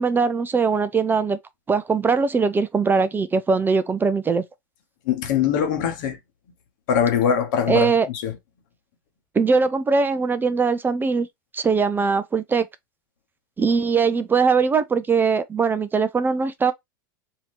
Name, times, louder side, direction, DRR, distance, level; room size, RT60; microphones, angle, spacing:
voice 1, 0.0-1.4 1.7-4.4 7.7-8.1 9.4-11.3 11.5-12.7 13.6-16.7, right 5 dB, 20° right, 0.4 m, -21 dB
voice 2, 5.0-6.2 6.9-8.4, left 8 dB, 65° left, 1.1 m, -22 dB
2.8 x 2.7 x 3.3 m
hypercardioid pair, 90°, 11 cm